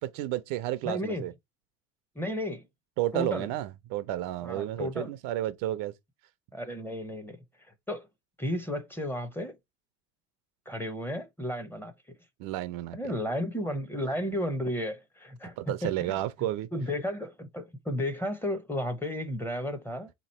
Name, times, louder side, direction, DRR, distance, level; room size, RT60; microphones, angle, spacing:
voice 1, 0.0-1.3 3.0-5.9 12.4-13.0 15.6-16.7, right 14 dB, 60° right, 0.6 m, -31 dB
voice 2, 0.8-1.2 2.1-2.7 3.1-3.5 4.4-5.1 6.5-8.1 8.4-9.6 10.7-11.9 12.9-15.6 15.8-16.2 16.7-20.1, left 1 dB, 5° left, 0.8 m, -33 dB
3.7 x 3.0 x 4.2 m
supercardioid pair, 105°, 39 cm